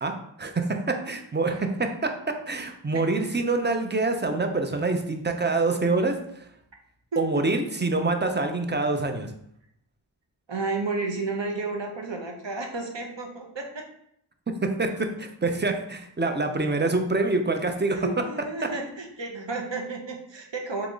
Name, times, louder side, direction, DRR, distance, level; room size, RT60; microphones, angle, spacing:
voice 1, 0.0-6.4 7.2-9.3 14.6-18.2 18.6-18.7, right 3 dB, 25° right, 5 dB, 0.5 m, -26 dB
voice 2, 10.5-13.8 17.9-20.9, right 3 dB, 60° right, 2 dB, 0.9 m, -32 dB
3.6 x 3.0 x 3.8 m, 0.73 s
wide cardioid pair, 50°, 49 cm